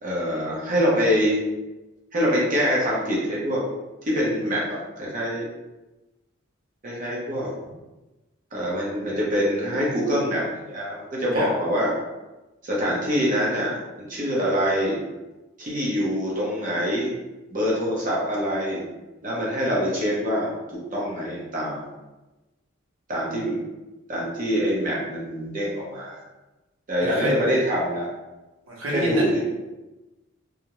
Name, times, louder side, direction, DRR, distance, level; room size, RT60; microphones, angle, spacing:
voice 1, 0.0-1.4 2.1-3.6 4.0-5.5 6.8-7.5 8.5-11.9 12.6-15.0 15.6-17.1 17.5-18.8 19.2-21.9 23.1-23.6 24.1-26.2 26.9-28.1 28.9-29.4, equal, 40° right, -5 dB, 0.7 m, -25 dB
voice 2, 27.0-27.3 28.7-29.1, right 1 dB, 80° right, -4 dB, 0.8 m, -28 dB
2.4 x 2.0 x 2.9 m, 1.1 s
head